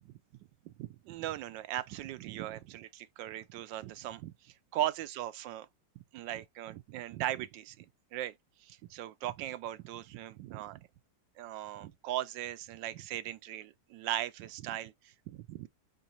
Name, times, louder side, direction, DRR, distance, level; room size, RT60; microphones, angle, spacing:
voice 1, 0.6-5.7 6.1-8.3 8.6-10.9 11.4-15.7, right 13 dB, 80° right, 1.2 m, -38 dB
4.9 x 3.8 x 2.8 m
omnidirectional pair, 2.0 m